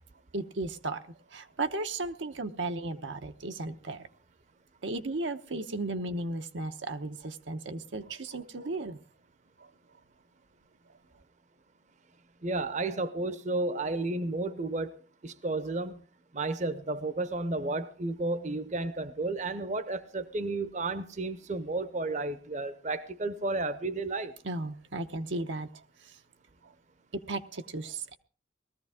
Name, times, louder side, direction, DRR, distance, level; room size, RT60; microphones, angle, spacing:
voice 1, 0.3-1.0 1.3-4.0 4.8-9.0 24.4-26.1 27.1-28.1, right 2 dB, 90° right, 1.0 m, -35 dB
voice 2, 12.4-16.0 16.3-24.3, right 2 dB, 40° right, 0.7 m, -32 dB
19.0 x 14.0 x 3.6 m
head